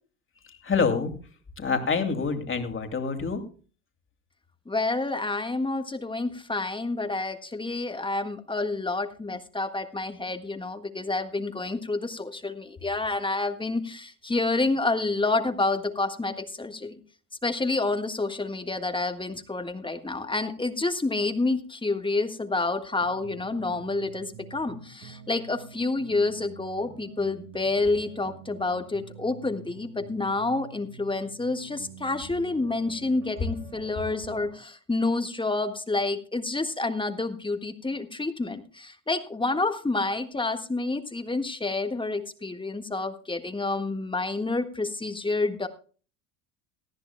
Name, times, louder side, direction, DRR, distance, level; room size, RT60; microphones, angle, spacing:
voice 1, 0.5-1.1 1.6-3.4, left 5 dB, 25° left, 5 dB, 2.7 m, -26 dB
voice 2, 4.7-17.0 17.4-45.7, left 3 dB, 10° left, 8 dB, 1.6 m, -29 dB
sound 1, 23.0-34.5, right 7 dB, 85° right, 5.7 m, -47 dB
19.0 x 14.0 x 2.2 m, 0.38 s
hypercardioid pair, 75°, 44 cm